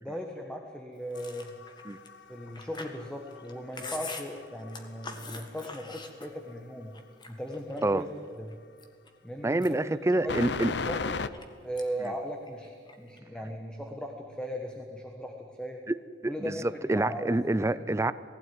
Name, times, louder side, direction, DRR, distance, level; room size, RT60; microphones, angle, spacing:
voice 1, 0.0-1.5 2.3-6.9 7.3-8.1 8.4-8.5 9.2-10.4 10.9-11.1 11.6-15.8 16.3-17.3, equal, 5° left, 2 dB, 1.4 m, -38 dB
Chewing mastication, 1.1-6.6 6.9-8.0 8.5-9.1 9.5-11.5 11.8-12.1 12.4-13.2, left 3 dB, 25° left, 1.7 m, -44 dB
sound 1, 1.2-3.9 4.2-5.3 10.3-11.3, left 4 dB, 65° left, 0.7 m, -35 dB
voice 2, 9.4-10.7 16.2-18.1, right 2 dB, 15° right, 15 dB, 0.4 m, -27 dB
19.5 x 16.0 x 9.5 m, 2.1 s
head